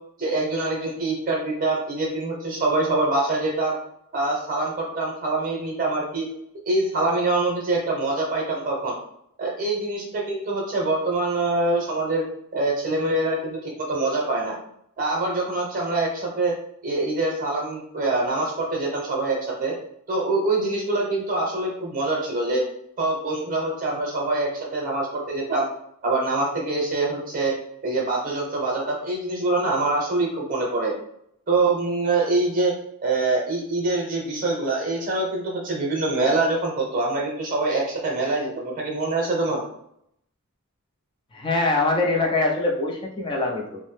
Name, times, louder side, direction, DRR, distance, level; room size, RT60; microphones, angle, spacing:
voice 1, 0.2-3.8 4.1-6.3 6.7-9.0 9.4-12.2 12.5-14.5 15.0-16.6 16.8-19.7 20.1-22.6 23.0-25.7 26.0-27.5 27.8-30.9 31.5-32.7 33.0-39.6, right 2 dB, 40° right, -2 dB, 0.7 m, -24 dB
voice 2, 41.3-43.8, left 2 dB, 20° left, 0 dB, 0.4 m, -23 dB
2.6 x 2.0 x 3.1 m, 0.73 s
head